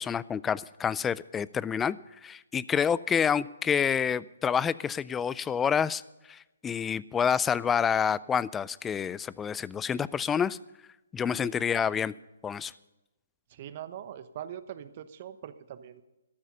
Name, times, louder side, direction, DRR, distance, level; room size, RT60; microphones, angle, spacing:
voice 1, 0.0-6.0 6.3-10.6 11.1-12.1 12.4-12.7, left 7 dB, 10° left, 20 dB, 0.3 m, -28 dB
voice 2, 13.5-16.0, right 10 dB, 40° right, 12 dB, 1.0 m, -42 dB
13.5 x 12.0 x 5.5 m, 1.0 s
hypercardioid pair, 145°, 0 cm